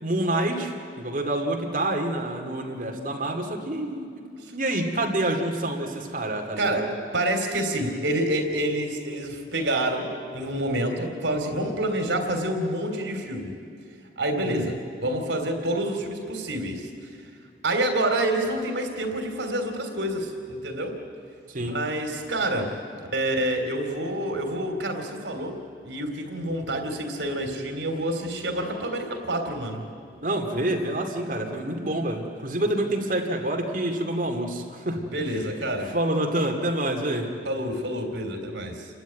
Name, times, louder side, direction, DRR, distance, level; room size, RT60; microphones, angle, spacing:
voice 1, 0.0-4.1 4.5-6.9 14.3-14.7 21.5-21.8 30.2-35.3 35.8-37.3, right 1 dB, 45° right, 2 dB, 2.3 m, -27 dB
voice 2, 6.6-13.5 14.2-16.9 17.6-21.0 21.6-22.7 23.1-25.6 25.8-29.8 35.1-35.9 37.4-38.9, right 1 dB, 80° right, 4 dB, 3.3 m, -28 dB
29.5 x 12.5 x 9.3 m, 2.4 s
head